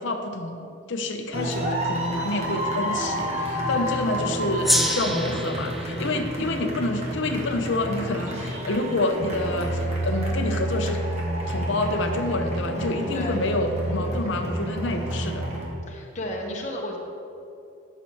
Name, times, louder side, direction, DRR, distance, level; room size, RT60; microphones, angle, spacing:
voice 1, 0.0-11.0 11.5-15.5, left 2 dB, 65° left, 5 dB, 0.8 m, -28 dB
sound 1, 1.3-15.6, right 1 dB, 35° right, 1.4 m, -29 dB
voice 2, 3.7-4.1 6.0-6.4 12.7-13.5 14.9-15.4 15.9-17.0, left 1 dB, 35° left, -1 dB, 1.1 m, -35 dB
Gong, 4.6-9.4, equal, ahead, 0.5 m, -30 dB
13.0 x 6.9 x 3.1 m, 2.6 s
head